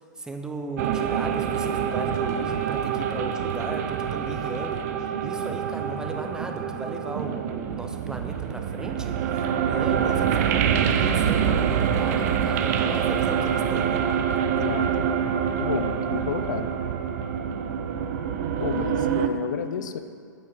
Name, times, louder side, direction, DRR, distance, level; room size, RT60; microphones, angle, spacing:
voice 1, 0.2-4.8 5.2-14.0, right 2 dB, 5° right, 4 dB, 0.6 m, -36 dB
sound 1, 0.8-19.3, right 8 dB, 50° right, 0.6 m, -26 dB
voice 2, 14.5-16.7 18.6-20.0, left 7 dB, 70° left, 10 dB, 0.5 m, -31 dB
8.6 x 8.5 x 4.0 m, 2.2 s
hypercardioid pair, 115°, 10 cm